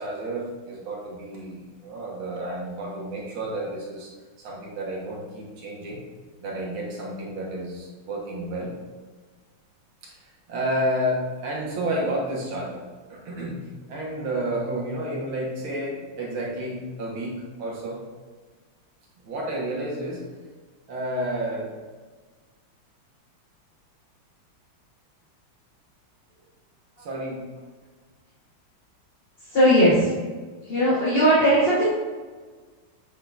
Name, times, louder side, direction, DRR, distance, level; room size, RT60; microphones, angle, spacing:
voice 1, 0.0-4.1 4.4-6.0 6.4-8.7 10.0-10.2 10.5-12.8 13.1-18.0 19.2-20.2 20.9-21.7 27.0-27.5, right 1 dB, 70° right, -3 dB, 2.1 m, -31 dB
voice 2, 29.5-30.1 30.7-31.9, equal, 35° left, -8 dB, 1.2 m, -18 dB
8.1 x 5.6 x 2.5 m, 1.4 s
omnidirectional pair, 2.3 m